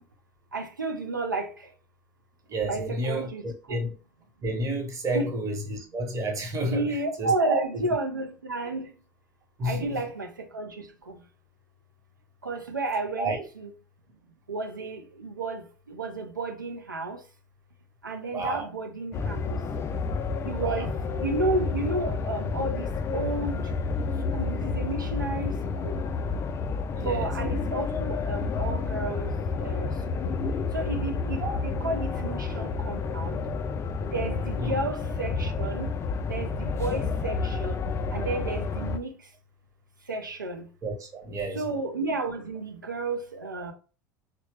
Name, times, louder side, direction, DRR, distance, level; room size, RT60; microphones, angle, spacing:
voice 1, 0.5-1.5 2.6-3.4 3.7-3.8 5.1-5.3 6.6-8.9 9.6-11.1 12.4-13.7 14.5-17.2 18.0-19.6 20.4-20.9 21.2-23.7 24.3-26.0 27.0-29.3 29.6-29.9 30.2-30.4 30.7-33.4 34.0-35.9 36.2-37.8 38.1-39.1 40.1-40.7 41.5-43.7, right 2 dB, 85° right, 0.5 m, -32 dB
voice 2, 2.5-3.9 4.4-7.7 9.6-10.0 13.2-13.4 18.3-18.7 20.6-20.8 26.9-27.3 31.4-31.6 34.6-34.8 40.8-41.6, right 1 dB, 30° right, 0.9 m, -30 dB
sound 1, 19.1-39.0, left 4 dB, 25° left, 0.3 m, -30 dB
3.0 x 2.0 x 3.2 m
figure-of-eight pair, 75°, 10 cm